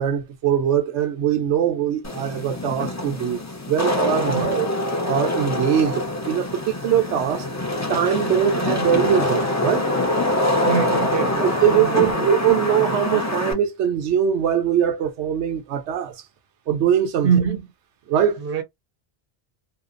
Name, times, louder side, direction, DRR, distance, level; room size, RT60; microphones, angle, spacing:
voice 1, 0.0-3.4 3.7-7.5 7.9-9.9 11.4-16.1 16.7-17.3 18.1-18.4, right 9 dB, 90° right, 0.9 m, -22 dB
Wind / Rain, 2.0-13.5, left 1 dB, 25° left, 0.4 m, -24 dB
voice 2, 4.3-4.6 10.6-12.3 17.2-17.6 18.4-18.6, right 7 dB, 60° right, 0.8 m, -24 dB
2.7 x 2.0 x 2.4 m
omnidirectional pair, 1.1 m